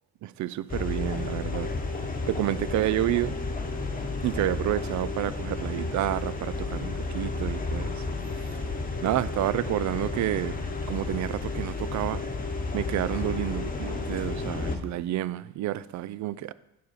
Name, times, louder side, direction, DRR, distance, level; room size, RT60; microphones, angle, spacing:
voice 1, 0.2-1.7 2.3-3.4 4.2-8.0 9.0-10.5 10.9-12.2 12.7-16.5, right 14 dB, 70° right, 0.5 m, -29 dB
sound 1, 0.7-14.8, left 3 dB, 30° left, 1.1 m, -32 dB
9.4 x 6.3 x 4.1 m
cardioid pair, 90°, 30 cm